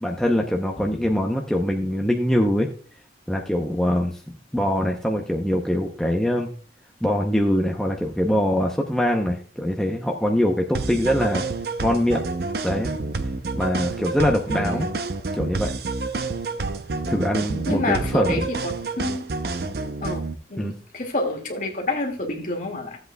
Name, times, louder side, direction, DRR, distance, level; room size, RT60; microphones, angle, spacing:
voice 1, 0.0-2.7 3.3-6.5 7.0-11.5 11.8-12.2 12.6-12.9 13.5-14.9 15.3-15.7 17.1-18.5 20.6-20.7, equal, 5° left, 0 dB, 0.6 m, -23 dB
sound 1, 10.7-20.3, right 3 dB, 60° right, 0.6 m, -29 dB
voice 2, 14.5-14.9 17.7-19.2 20.0-20.2 20.5-23.0, left 2 dB, 45° left, 2 dB, 2.0 m, -28 dB
15.0 x 8.0 x 2.2 m, 0.40 s
head